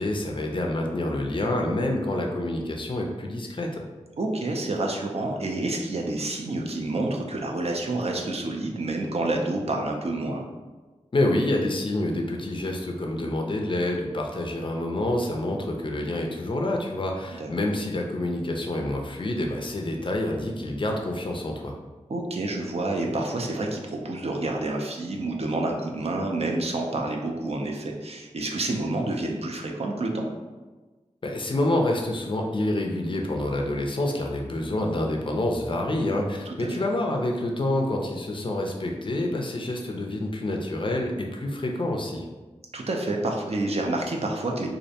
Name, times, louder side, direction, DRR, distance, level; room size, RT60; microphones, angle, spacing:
voice 1, 0.0-3.8 11.1-21.8 31.2-42.2, left 1 dB, 45° left, 1 dB, 0.4 m, -27 dB
voice 2, 4.2-10.4 17.4-17.5 22.1-30.3 36.5-36.7 42.7-44.7, right 2 dB, 55° right, 1 dB, 0.4 m, -28 dB
2.5 x 2.1 x 2.7 m, 1.2 s
wide cardioid pair, 55°, 12 cm